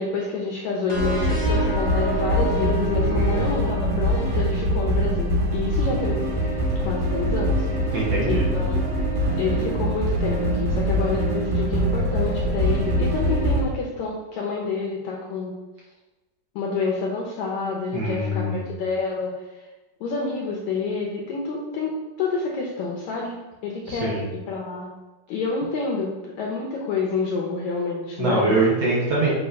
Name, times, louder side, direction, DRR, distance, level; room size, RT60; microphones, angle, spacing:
voice 1, 0.0-6.2 6.8-7.7 8.3-8.8 9.4-15.6 16.6-19.7 20.0-21.9 22.2-23.4 23.6-24.9 25.3-28.5, left 4 dB, 75° left, -1 dB, 1.8 m, -28 dB
sound 1, 0.9-4.4, right 1 dB, 35° left, 1.0 m, -31 dB
sound 2, 0.9-13.6, equal, 85° right, 3.4 m, -23 dB
voice 2, 3.0-3.5 7.9-8.4 17.9-18.7 23.9-24.3 28.2-29.3, right 2 dB, 60° right, -5 dB, 1.9 m, -24 dB
6.9 x 3.1 x 5.5 m, 1.1 s
omnidirectional pair, 4.1 m